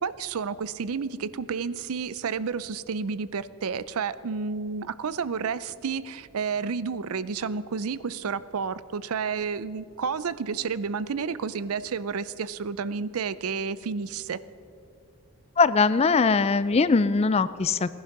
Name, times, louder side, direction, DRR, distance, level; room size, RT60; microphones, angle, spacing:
voice 1, 0.0-14.4, right 5 dB, 75° right, 17 dB, 0.5 m, -31 dB
voice 2, 15.6-17.9, left 4 dB, 30° left, 15 dB, 0.4 m, -21 dB
17.5 x 11.0 x 5.9 m, 2.4 s
head